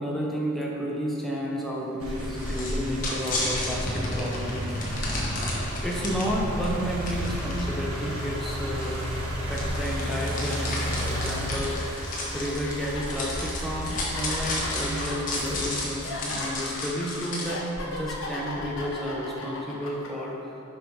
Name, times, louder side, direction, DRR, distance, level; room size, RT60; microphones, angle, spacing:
voice 1, 0.0-4.6 5.8-9.0 9.4-11.8 12.3-20.4, equal, ahead, -3 dB, 0.9 m, -31 dB
sound 1, 2.0-17.0 17.6-18.8, equal, 85° right, 1.7 m, -33 dB
sound 2, 2.4-6.2 6.6-6.7 7.1-17.5, left 2 dB, 40° left, 1.2 m, -33 dB
sound 3, 10.1-10.2 10.7-20.1, left 2 dB, 60° left, 1.1 m, -37 dB
7.2 x 5.0 x 5.5 m, 2.7 s
head